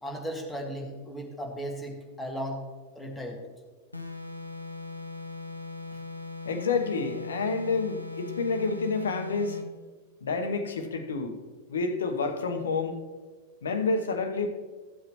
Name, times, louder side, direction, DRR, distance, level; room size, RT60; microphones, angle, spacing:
voice 1, 0.0-2.6 2.9-3.4, equal, 5° left, 0 dB, 1.8 m, -36 dB
sound 1, 3.9-9.7, left 3 dB, 85° left, 0.6 m, -39 dB
voice 2, 6.4-9.6 10.2-11.4 11.7-13.0 13.6-14.5, left 4 dB, 65° left, 7 dB, 1.0 m, -29 dB
14.0 x 7.6 x 3.1 m, 1.4 s
figure-of-eight pair, 90°, 0 cm